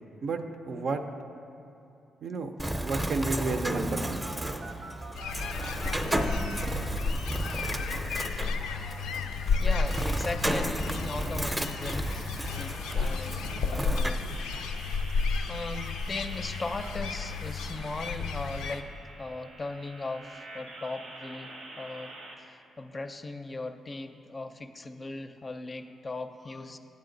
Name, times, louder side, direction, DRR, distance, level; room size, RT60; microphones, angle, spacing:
voice 1, 0.2-1.0 2.2-2.5 2.8-4.2, right 3 dB, 65° right, 6 dB, 0.5 m, -31 dB
Bird, 2.6-14.1, right 1 dB, 15° right, 0.6 m, -33 dB
sound 1, 3.3-5.9 6.2-8.8 9.2-22.4, right 2 dB, 85° right, 0.9 m, -48 dB
sound 2, 5.1-18.8, left 4 dB, 90° left, 0.4 m, -32 dB
voice 2, 9.6-12.1 12.5-14.3 15.5-18.9 19.2-26.8, left 3 dB, 35° left, 8 dB, 0.5 m, -38 dB
8.6 x 7.3 x 3.9 m, 2.8 s
supercardioid pair, 65°, 0 cm